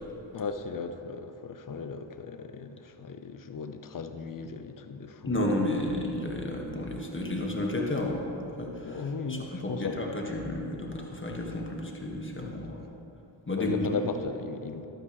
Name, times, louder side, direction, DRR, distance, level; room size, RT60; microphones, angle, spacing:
voice 1, 0.3-5.5 8.8-10.0 12.4-12.7 13.6-14.9, left 5 dB, 45° left, 8 dB, 0.8 m, -36 dB
voice 2, 5.3-12.8 13.5-14.0, left 1 dB, 25° left, 0 dB, 1.8 m, -32 dB
12.0 x 9.1 x 3.2 m, 3.0 s
supercardioid pair, 50°, 46 cm